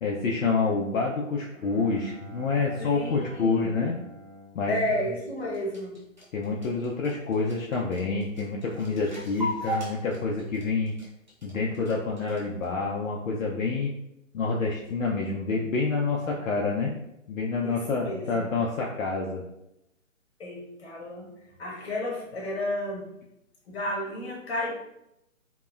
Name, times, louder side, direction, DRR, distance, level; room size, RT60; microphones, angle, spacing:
voice 1, 0.0-3.9 4.5-4.7 6.3-10.9 11.4-13.9 14.3-16.9 17.3-19.4, left 4 dB, 75° left, -2 dB, 0.5 m, -27 dB
Bowed string instrument, 1.5-5.9, equal, 85° right, 1.3 m, -48 dB
voice 2, 2.8-3.8 4.7-6.1 17.6-18.5 20.4-21.3 21.6-23.2 23.7-24.9, left 1 dB, 50° left, -3 dB, 1.0 m, -32 dB
sound 1, 5.4-12.6, equal, 35° right, 0.4 m, -37 dB
2.8 x 2.1 x 2.3 m, 0.84 s
hypercardioid pair, 165°, 41 cm